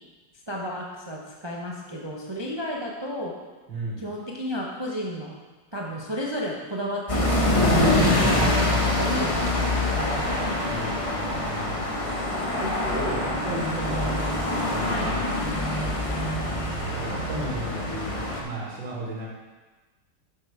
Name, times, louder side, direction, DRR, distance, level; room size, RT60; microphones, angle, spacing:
voice 1, 0.5-3.3 4.0-5.4 5.7-7.4 8.0-10.2 14.9-15.1, equal, 45° right, -2 dB, 0.3 m, -32 dB
voice 2, 3.7-4.0 8.0-8.5 10.7-11.8 12.6-14.2 14.7-15.8 16.9-19.3, right 2 dB, 90° right, -5 dB, 2.7 m, -34 dB
sound 1, 7.1-18.4, left 1 dB, 25° left, 0.7 m, -25 dB
7.2 x 6.4 x 4.8 m, 1.3 s
omnidirectional pair, 2.0 m